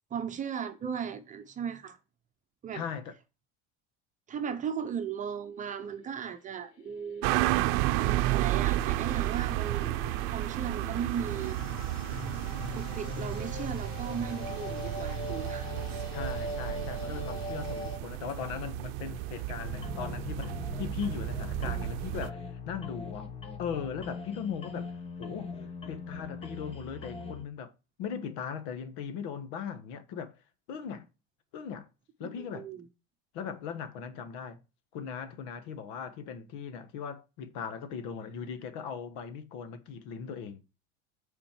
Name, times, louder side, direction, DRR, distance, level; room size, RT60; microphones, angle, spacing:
voice 1, 0.1-2.0 2.6-2.8 4.3-7.3 7.9-10.0 10.3-11.6 12.7-15.8 32.2-32.9, right 7 dB, 25° right, 0.9 m, -37 dB
voice 2, 2.7-3.1 16.1-23.3 23.6-25.5 25.9-27.7 28.0-30.3 30.7-31.1 31.5-31.9 32.2-32.7 33.3-34.6 34.9-40.6, left 7 dB, 70° left, 1.4 m, -39 dB
sound 1, 6.6-18.0, left 2 dB, 45° left, 1.3 m, -41 dB
sound 2, 7.2-22.3, right 17 dB, 80° right, 0.6 m, -32 dB
sound 3, 19.6-27.4, left 5 dB, 20° left, 1.0 m, -41 dB
8.6 x 4.4 x 4.5 m
cardioid pair, 160°, 30 cm